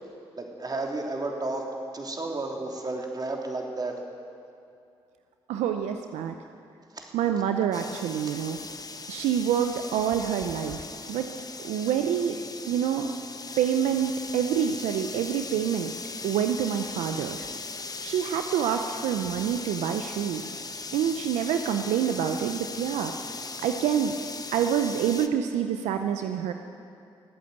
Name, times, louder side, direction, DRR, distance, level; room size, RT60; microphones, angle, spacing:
voice 1, 0.4-1.7 1.9-3.9 6.9-7.0, right 2 dB, 35° right, 1 dB, 3.2 m, -32 dB
voice 2, 5.5-6.3 7.1-8.6 9.1-11.3 11.6-12.4 12.6-13.1 13.6-15.9 16.2-17.5 18.0-20.6 20.9-23.1 23.6-24.1 24.5-26.5, right 9 dB, 85° right, 6 dB, 0.6 m, -27 dB
sound 1, 7.7-25.3, left 3 dB, 35° left, 1.0 m, -39 dB
20.0 x 8.7 x 8.2 m, 2.6 s
supercardioid pair, 50°, 11 cm